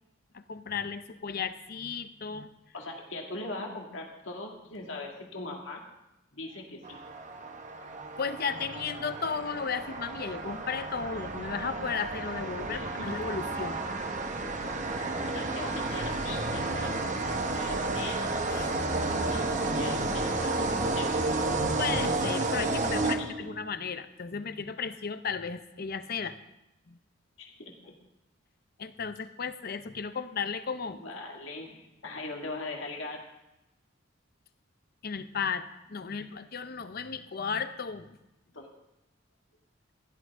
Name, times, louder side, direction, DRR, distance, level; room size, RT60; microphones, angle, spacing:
voice 1, 0.3-2.5 8.2-13.8 18.5-19.1 21.8-26.4 26.9-27.0 28.8-31.0 35.0-38.2, left 6 dB, 50° left, 11 dB, 0.6 m, -35 dB
voice 2, 2.7-5.8 6.3-7.0 12.7-13.1 15.3-17.1 17.5-18.2 19.1-21.1 23.2-23.3 27.4-27.9 30.9-33.2 38.5-38.7, left 2 dB, 75° left, 0 dB, 2.1 m, -40 dB
sound 1, 6.8-23.7, right 2 dB, 40° right, 1.0 m, -31 dB
15.5 x 11.5 x 3.7 m, 0.92 s
head